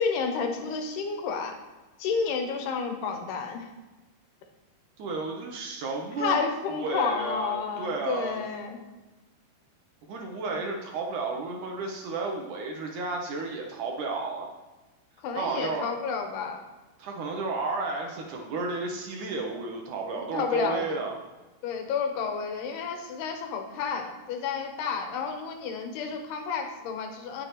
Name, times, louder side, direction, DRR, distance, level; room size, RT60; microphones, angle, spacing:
voice 1, 0.0-1.6 2.0-3.7 6.2-8.8 15.2-16.6 20.1-20.8 21.6-27.5, left 5 dB, 90° left, 4 dB, 3.2 m, -30 dB
voice 2, 5.0-6.4 6.7-8.4 10.1-14.5 15.4-15.9 17.0-21.2, right 3 dB, 70° right, 1 dB, 2.0 m, -32 dB
19.0 x 6.6 x 3.1 m, 1.2 s
omnidirectional pair, 4.5 m